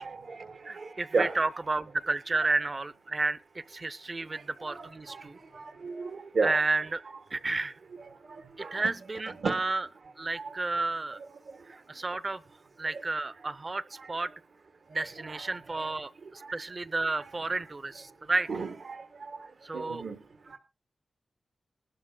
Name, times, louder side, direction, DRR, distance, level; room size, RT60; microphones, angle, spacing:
voice 1, 0.0-1.4 4.3-6.6 8.0-8.9 9.4-9.6 10.3-10.5 11.2-11.8 12.9-13.0 13.3-13.5 13.9-14.1 14.9-16.0 16.2-16.6 17.2-17.4 18.5-20.6, right 4 dB, 75° right, 1.3 m, -36 dB
voice 2, 0.6-5.4 6.4-7.0 7.3-7.7 8.6-9.9 10.2-11.2 11.9-12.4 12.8-14.3 14.9-18.5 19.6-20.0, right 3 dB, 35° right, 0.6 m, -31 dB
21.0 x 12.5 x 2.3 m
wide cardioid pair, 110°, 0 cm